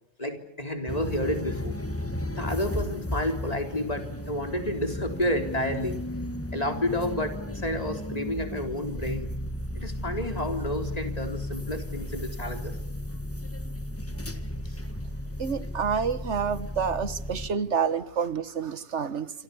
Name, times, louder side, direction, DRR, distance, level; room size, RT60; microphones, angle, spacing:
voice 1, 0.2-1.8 2.4-6.0 6.5-9.3 9.7-12.7 14.6-14.8, left 1 dB, 35° left, 5 dB, 3.9 m, -30 dB
sound 1, 0.9-17.5, left 1 dB, 10° left, 1.4 m, -34 dB
voice 2, 15.4-19.3, right 6 dB, 80° right, 14 dB, 1.6 m, -28 dB
27.5 x 26.5 x 7.0 m, 0.69 s
omnidirectional pair, 1.2 m